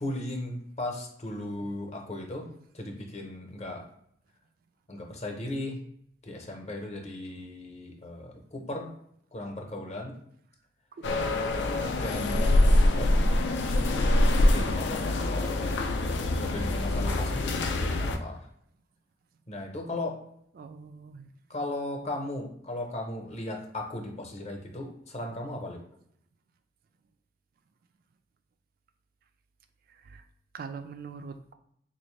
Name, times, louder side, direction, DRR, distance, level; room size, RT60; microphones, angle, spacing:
voice 1, 0.0-2.5 2.7-3.8 4.9-5.8 6.2-8.9 9.3-10.2 11.6-11.7 12.0-13.6 14.4-15.8 16.4-18.4 19.5-20.2 21.5-25.8, left 1 dB, 40° left, 2 dB, 0.8 m, -37 dB
sound 1, 11.0-18.2, left 1 dB, 75° left, 0.4 m, -25 dB
voice 2, 11.7-12.0 20.6-21.3 30.0-30.2 30.5-31.5, right 5 dB, 55° right, 8 dB, 0.3 m, -42 dB
3.6 x 2.6 x 3.2 m, 0.70 s
head